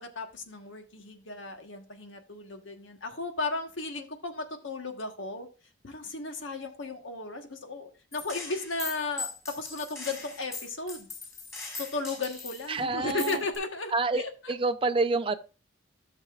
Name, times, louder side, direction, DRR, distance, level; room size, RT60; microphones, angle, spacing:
voice 1, 0.0-5.5 5.8-11.1 11.8-14.5, left 3 dB, 75° left, 1.4 m, -35 dB
Gunshot gunfire, 8.1-12.7 13.2-13.6, left 4 dB, 15° left, 4.7 m, -40 dB
voice 2, 12.7-13.4 13.9-15.4, right 3 dB, 25° right, 0.6 m, -28 dB
14.5 x 6.6 x 2.5 m
head